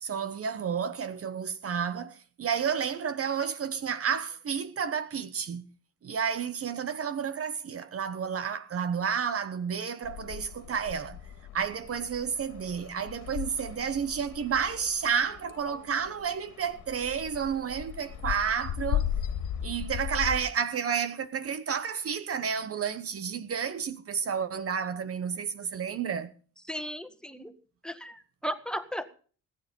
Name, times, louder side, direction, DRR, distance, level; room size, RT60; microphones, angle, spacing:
voice 1, 0.0-5.7 6.0-11.2 11.5-19.1 19.6-26.3, right 7 dB, 50° right, 1.1 m, -31 dB
sound 1, 10.0-20.4, left 9 dB, 85° left, 2.6 m, -37 dB
voice 2, 26.7-27.5 27.8-29.1, equal, 5° left, 1.6 m, -36 dB
20.0 x 9.4 x 5.5 m
cardioid pair, 90°, 30 cm